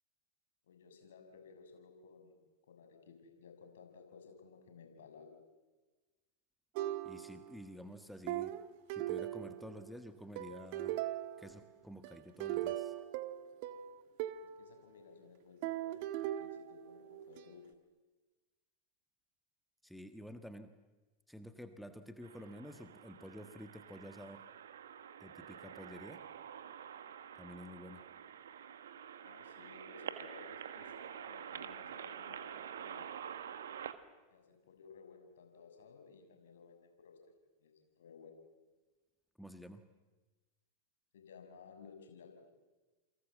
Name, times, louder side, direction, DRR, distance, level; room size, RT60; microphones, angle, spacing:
voice 1, 0.6-2.4 2.7-5.4 14.4-17.7 29.2-33.1 34.3-37.2 37.6-38.3 41.1-42.3, left 5 dB, 60° left, 4 dB, 6.6 m, -57 dB
sound 1, 6.7-7.6 8.3-9.9 10.4-11.6 12.0-14.5 15.6-17.4, right 13 dB, 45° right, 1.6 m, -39 dB
voice 2, 7.0-8.5 8.9-11.0 11.4-12.9 19.8-20.7 21.3-24.4 25.2-26.2 27.4-28.1 39.4-39.8, equal, ahead, 8 dB, 1.5 m, -50 dB
sound 2, 22.2-33.9, right 8 dB, 65° right, 1.8 m, -48 dB
29.0 x 24.0 x 7.6 m, 1.2 s
figure-of-eight pair, 90°, 0 cm